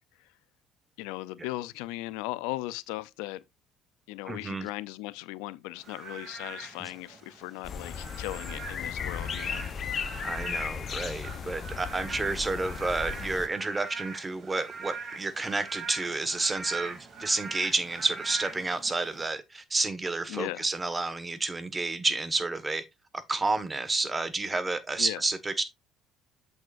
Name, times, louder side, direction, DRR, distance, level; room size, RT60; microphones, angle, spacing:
voice 1, 1.0-3.4 4.1-9.6 20.3-20.7 25.0-25.2, left 18 dB, 80° left, 0.5 m, -37 dB
voice 2, 4.3-4.7 6.8-6.9 10.2-22.8 23.1-25.6, right 3 dB, 25° right, 1.5 m, -30 dB
Frog / Rain, 5.8-19.3, right 4 dB, 50° right, 2.8 m, -43 dB
sound 1, 7.6-13.5, left 6 dB, 50° left, 0.8 m, -36 dB
7.8 x 7.1 x 2.6 m
supercardioid pair, 70°, 0 cm